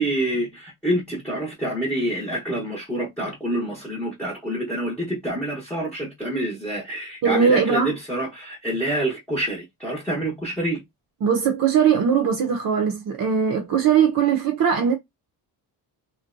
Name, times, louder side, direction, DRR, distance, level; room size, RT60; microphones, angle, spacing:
voice 1, 0.0-10.8, right 1 dB, 5° left, 0.8 m, -27 dB
voice 2, 7.2-7.9 11.2-15.0, right 7 dB, 55° right, 0.6 m, -20 dB
2.5 x 2.2 x 2.4 m
cardioid pair, 115°, 40 cm